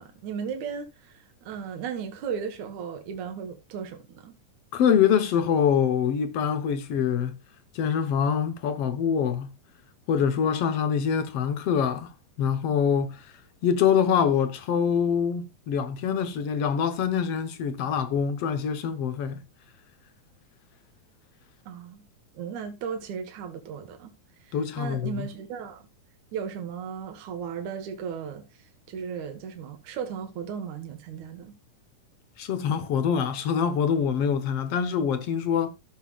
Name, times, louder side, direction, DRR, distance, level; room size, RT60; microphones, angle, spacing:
voice 1, 0.0-4.3 21.7-22.0 22.3-24.1 24.4-25.8 26.3-28.4 28.9-31.5, right 7 dB, 70° right, 2.8 m, -36 dB
voice 2, 4.7-7.4 7.8-9.5 10.1-12.1 12.4-13.2 13.6-19.4 24.5-25.3 32.4-35.7, left 7 dB, 60° left, 1.8 m, -25 dB
14.0 x 6.9 x 2.4 m
omnidirectional pair, 3.6 m